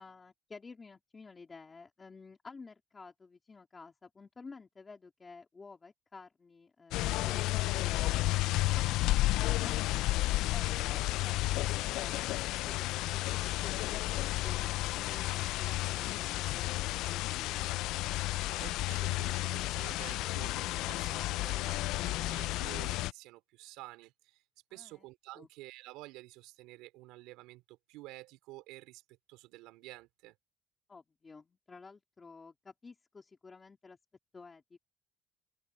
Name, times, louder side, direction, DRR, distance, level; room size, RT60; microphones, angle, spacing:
voice 1, 0.0-10.2 10.5-17.8 24.7-25.1 25.3-25.5 30.9-34.0 34.3-34.8, left 4 dB, 20° left, 3.3 m, -52 dB
sound 1, 6.9-23.1, left 18 dB, 75° left, 0.3 m, -32 dB
voice 2, 18.6-24.4 24.7-29.0 29.3-30.4, right 19 dB, 85° right, 4.1 m, -50 dB
open air
cardioid pair, 135°, 0 cm